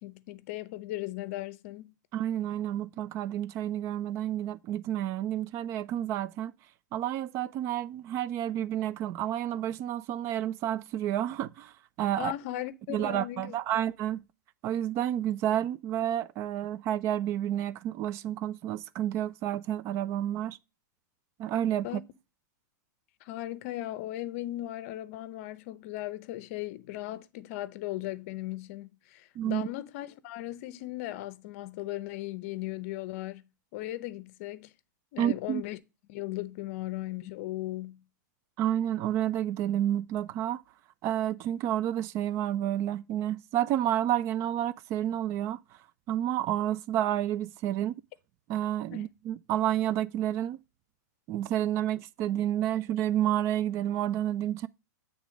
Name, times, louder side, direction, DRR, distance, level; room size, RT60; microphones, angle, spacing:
voice 1, 0.0-1.9 12.2-13.6 21.8-22.0 23.2-34.7 35.1-35.8 36.1-38.0 48.9-49.1, left 15 dB, 45° left, 0.7 m, -37 dB
voice 2, 2.1-6.5 6.9-11.7 12.0-12.3 12.9-14.2 14.6-20.6 21.4-21.9 29.4-29.7 35.2-35.6 38.6-40.6 41.0-45.6 46.1-48.0 48.5-50.6 51.3-54.7, right 11 dB, 30° right, 0.4 m, -30 dB
8.2 x 3.5 x 5.1 m
supercardioid pair, 150°, 10 cm